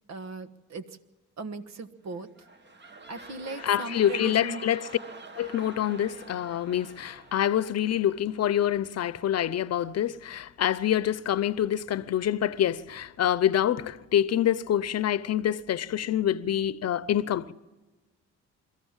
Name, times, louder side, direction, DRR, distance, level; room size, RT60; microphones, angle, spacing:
voice 1, 0.1-1.0 1.4-2.5 2.7-4.6, right 3 dB, 65° right, 1.5 m, -39 dB
sound 1, 2.0-8.6 9.1-9.2, right 3 dB, 35° right, 1.8 m, -48 dB
voice 2, 3.6-4.9 5.4-17.5, left 10 dB, 55° left, 0.9 m, -26 dB
23.5 x 15.0 x 7.3 m
cardioid pair, 90°, 30 cm